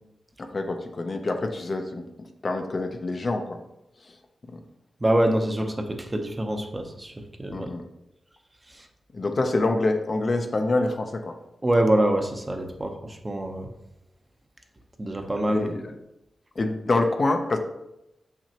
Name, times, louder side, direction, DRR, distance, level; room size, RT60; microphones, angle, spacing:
voice 1, 0.4-3.6 4.0-4.1 4.5-4.6 7.5-7.8 9.1-11.4 15.5-16.0 16.6-17.6, left 2 dB, 40° left, 5 dB, 0.6 m, -26 dB
voice 2, 5.0-7.7 11.6-13.7 15.0-15.7, right 1 dB, 20° right, 5 dB, 0.7 m, -25 dB
6.4 x 5.9 x 2.9 m, 0.87 s
wide cardioid pair, 100°, 0 cm